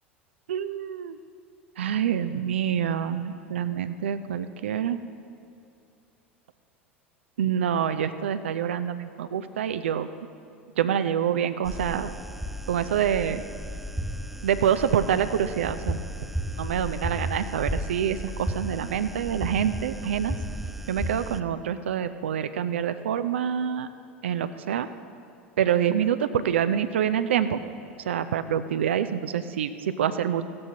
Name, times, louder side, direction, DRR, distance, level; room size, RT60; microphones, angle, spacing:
voice 1, 0.5-1.2 1.8-5.0 7.4-10.1 10.8-12.1 12.7-13.4 14.4-16.0 16.6-20.3 20.9-23.9 24.2-24.9 25.6-27.6 28.0-30.4, right 9 dB, 65° right, 11 dB, 0.4 m, -26 dB
sound 1, 11.6-21.4, equal, ahead, 0.4 m, -34 dB
15.5 x 13.0 x 2.8 m, 2.6 s
figure-of-eight pair, 75°, 7 cm